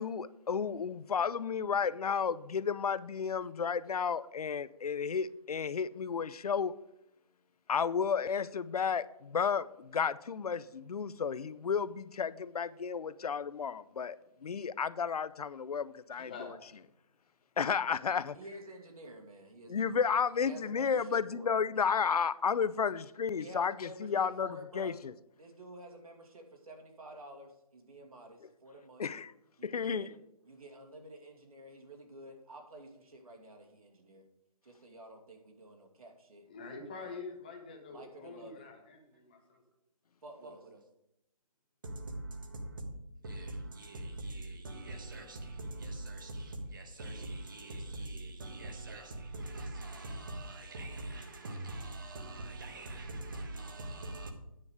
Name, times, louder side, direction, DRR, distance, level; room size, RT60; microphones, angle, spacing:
voice 1, 0.0-6.7 7.7-14.2 14.4-16.6 17.6-18.4 19.7-25.1 29.0-29.3 29.6-30.1, left 6 dB, 80° left, 0.6 m, -32 dB
voice 2, 16.2-16.5 36.5-39.6, left 4 dB, 15° left, 0.9 m, -46 dB
voice 3, 18.3-21.5 23.4-25.0 25.4-29.0 29.6-30.1 30.4-34.2 34.6-36.4 36.9-37.2 37.9-38.6 40.2-40.6, right 1 dB, 70° right, 2.5 m, -50 dB
voice 4, 40.4-40.8 41.8-43.0 43.2-54.3, right 1 dB, 35° right, 1.3 m, -42 dB
9.6 x 7.0 x 4.8 m
hypercardioid pair, 175°, 19 cm